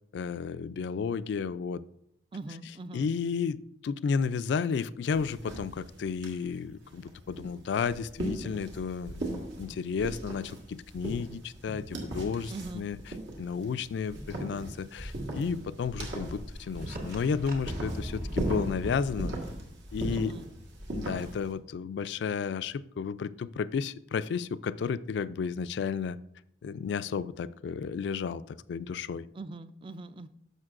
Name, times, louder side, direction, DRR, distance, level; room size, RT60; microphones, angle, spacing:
voice 1, 0.1-1.8 2.9-13.0 13.4-19.4 19.9-20.3 20.9-26.2 26.6-29.3, left 6 dB, 65° left, 16 dB, 0.3 m, -32 dB
voice 2, 2.3-3.1 12.5-12.8 20.1-20.5 29.3-30.3, right 3 dB, 25° right, 13 dB, 0.3 m, -41 dB
sound 1, 5.1-21.5, right 1 dB, 75° right, 1.5 m, -39 dB
sound 2, 15.6-19.2, equal, 50° right, 1.1 m, -40 dB
11.0 x 6.6 x 2.5 m, 0.75 s
head